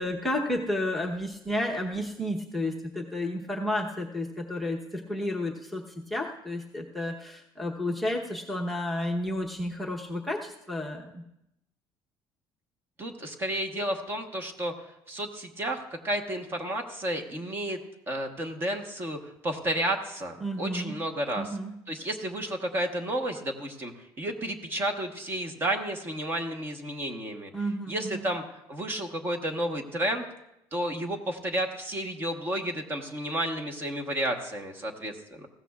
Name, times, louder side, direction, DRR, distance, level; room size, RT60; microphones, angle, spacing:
voice 1, 0.0-11.2 20.4-21.0 21.3-21.7 27.5-28.3, left 1 dB, ahead, 0 dB, 0.9 m, -31 dB
voice 2, 13.0-14.7 15.1-17.8 18.1-21.6 21.9-23.9 24.2-27.5 27.9-30.2 30.7-35.5, right 1 dB, 25° right, 4 dB, 1.1 m, -32 dB
20.0 x 15.5 x 2.4 m, 0.85 s
cardioid pair, 170°, 9 cm